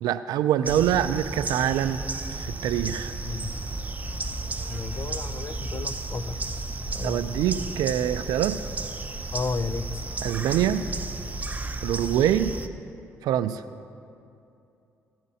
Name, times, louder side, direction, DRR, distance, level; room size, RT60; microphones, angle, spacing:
voice 1, 0.0-2.0 2.3-3.1 7.0-8.6 10.2-10.9 11.8-12.6 13.2-13.6, right 11 dB, 80° right, 12 dB, 0.4 m, -24 dB
sound 1, 0.6-12.7, right 2 dB, 25° right, 0.6 m, -33 dB
voice 2, 3.2-3.6 4.7-7.4 9.3-10.1, left 4 dB, 45° left, 13 dB, 0.5 m, -34 dB
16.0 x 8.7 x 2.8 m, 2.6 s
supercardioid pair, 60°, 7 cm